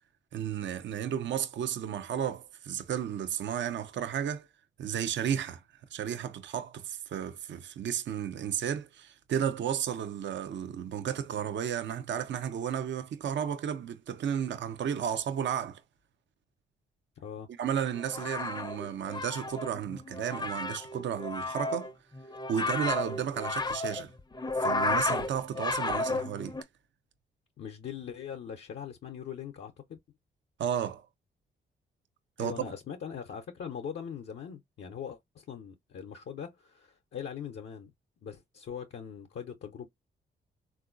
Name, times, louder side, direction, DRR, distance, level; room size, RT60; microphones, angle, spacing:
voice 1, 0.3-4.5 4.8-5.6 5.9-15.8 17.6-21.9 22.5-24.1 24.6-26.6 30.6-31.1 32.4-32.7, right 9 dB, 65° right, 0.6 m, -33 dB
voice 2, 17.2-17.5 27.6-30.0 32.4-37.9 38.2-39.9, left 8 dB, 65° left, 0.7 m, -41 dB
sound 1, 17.9-26.6, left 3 dB, 20° left, 0.6 m, -33 dB
3.7 x 2.5 x 2.4 m
supercardioid pair, 55°, 20 cm